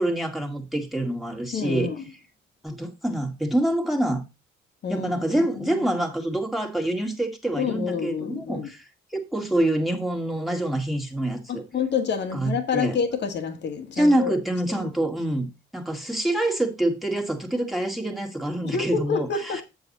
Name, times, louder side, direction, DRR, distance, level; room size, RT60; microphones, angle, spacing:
voice 1, 0.0-1.9 2.6-4.2 4.9-8.8 9.1-11.6 12.3-13.0 13.9-19.6, right 1 dB, ahead, 2.0 m, -26 dB
voice 2, 1.5-2.0 4.8-6.0 7.6-8.7 11.5-14.3 14.8-14.9 18.6-19.6, left 6 dB, 60° left, 2.0 m, -28 dB
8.0 x 7.1 x 4.0 m
cardioid pair, 90°, 20 cm